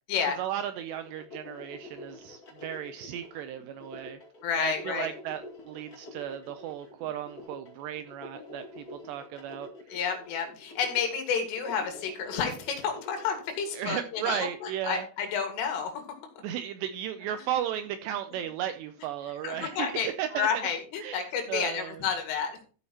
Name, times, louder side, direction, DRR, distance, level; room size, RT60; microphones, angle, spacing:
voice 1, 0.4-4.2 4.6-9.7 13.7-15.1 16.4-20.7 21.0-22.0, right 10 dB, 85° right, 9 dB, 2.5 m, -35 dB
sound 1, 0.7-14.4, left 2 dB, 40° left, 1.3 m, -47 dB
voice 2, 4.4-5.1 9.9-16.0 19.4-22.6, left 6 dB, 90° left, 5 dB, 4.7 m, -30 dB
13.5 x 5.7 x 4.2 m, 0.38 s
omnidirectional pair, 5.5 m